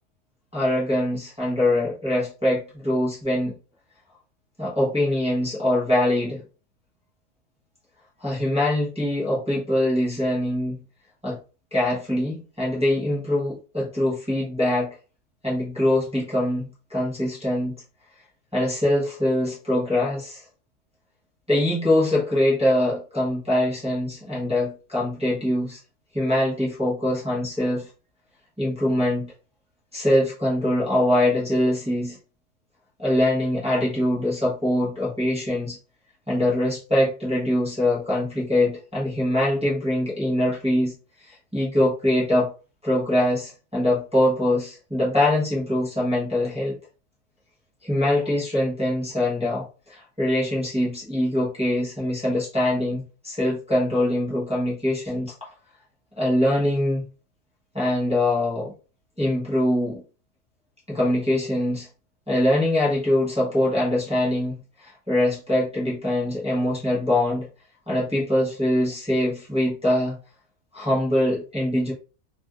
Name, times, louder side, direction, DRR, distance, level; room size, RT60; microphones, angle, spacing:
voice 1, 0.5-3.6 4.6-6.4 8.2-10.8 11.2-11.4 11.7-14.9 15.4-17.7 18.5-20.4 21.5-25.8 26.1-27.9 28.6-29.3 29.9-32.2 33.0-35.8 36.3-40.9 41.2-42.5 42.8-46.8 47.8-55.5 56.2-57.0 57.7-58.7 59.2-60.0 60.9-61.9 62.3-67.5 67.9-70.2 70.7-71.9, left 1 dB, 5° right, -6 dB, 0.8 m, -23 dB
3.4 x 2.5 x 2.3 m, 0.35 s
omnidirectional pair, 1.6 m